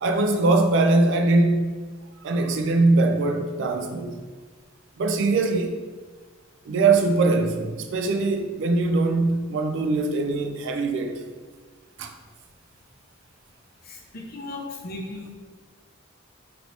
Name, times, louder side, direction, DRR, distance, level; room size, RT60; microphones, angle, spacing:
voice 1, 0.0-1.8 2.2-4.2 5.0-5.8 6.6-11.2 12.0-12.1, right 3 dB, 60° right, 0.3 m, -22 dB
voice 2, 13.8-15.3, left 2 dB, 45° left, 0.6 m, -36 dB
3.1 x 2.9 x 2.7 m
head